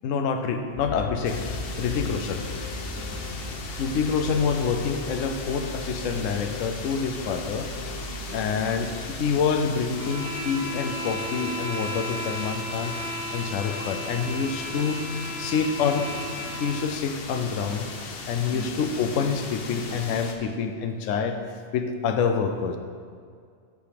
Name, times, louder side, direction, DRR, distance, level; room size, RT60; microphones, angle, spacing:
voice 1, 0.0-1.5 1.8-2.4 3.8-7.7 8.3-13.0 13.3-15.0 15.4-16.1 16.6-17.9 18.3-21.4 21.7-22.8, left 6 dB, 75° left, 6 dB, 1.0 m, -27 dB
sound 1, 0.7-11.0, left 1 dB, 25° left, 0.7 m, -38 dB
sound 2, 1.2-20.3, left 4 dB, 55° left, 0.9 m, -38 dB
voice 2, 2.1-2.4 2.7-3.6 8.2-8.6 12.9-14.1 18.2-18.8 20.4-20.9, right 1 dB, 20° right, -2 dB, 0.9 m, -47 dB
sound 3, 9.9-16.9, equal, 35° right, 1.6 m, -35 dB
10.5 x 4.9 x 5.1 m, 2.2 s
omnidirectional pair, 1.3 m